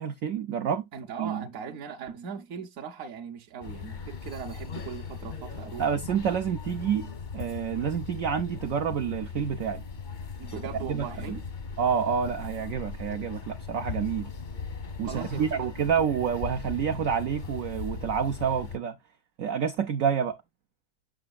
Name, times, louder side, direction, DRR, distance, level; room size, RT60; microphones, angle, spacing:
voice 1, 0.0-0.9 1.2-1.4 5.8-9.8 10.9-11.1 11.8-14.3 15.0-19.0 19.4-20.4, right 7 dB, 90° right, 0.7 m, -28 dB
voice 2, 0.9-6.0 10.4-11.4 15.0-15.7 16.0-16.1, right 7 dB, 60° right, 0.9 m, -39 dB
sound 1, 3.6-18.8, left 5 dB, 50° left, 0.5 m, -38 dB
7.6 x 6.0 x 2.3 m
omnidirectional pair, 2.1 m